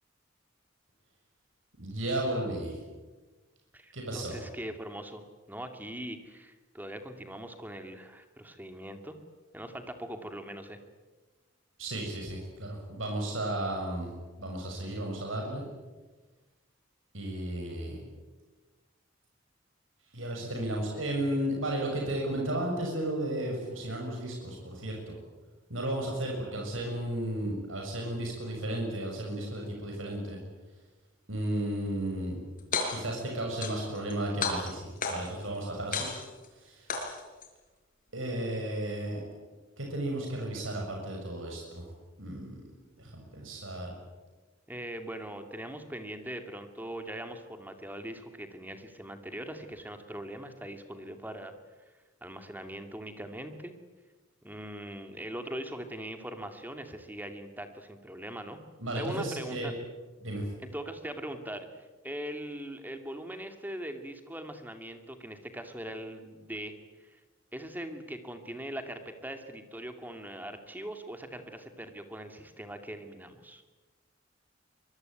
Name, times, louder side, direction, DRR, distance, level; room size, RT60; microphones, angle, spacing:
voice 1, 1.8-2.8 3.9-4.4 11.8-14.1 14.4-15.6 17.1-18.0 20.1-25.2 25.7-30.4 31.3-32.4 32.9-36.1 36.6-36.9 38.1-39.2 39.8-41.8 42.2-42.6 43.0-43.9 58.8-59.7 60.2-60.5, right 1 dB, 90° right, 0 dB, 6.5 m, -34 dB
voice 2, 3.7-9.2 9.5-10.8 44.7-51.5 52.2-53.7 54.4-58.6 59.0-59.8 60.7-67.2 67.5-73.6, right 1 dB, 10° right, 6 dB, 2.4 m, -41 dB
sound 1, 32.6-33.2 33.6-34.1 34.4-35.4 35.9-36.5 36.9-37.5, left 4 dB, 45° left, 5.4 m, -32 dB
25.0 x 22.5 x 9.3 m, 1.2 s
head